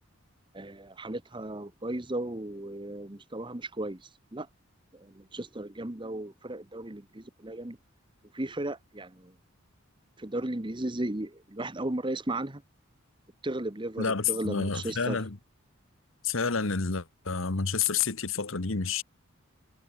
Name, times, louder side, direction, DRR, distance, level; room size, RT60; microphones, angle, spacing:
voice 1, 0.5-4.5 4.9-7.8 8.3-9.3 10.2-12.6 13.4-15.2, right 1 dB, 20° right, 1.1 m, -35 dB
voice 2, 14.0-15.4 16.2-19.0, left 5 dB, 65° left, 1.3 m, -29 dB
head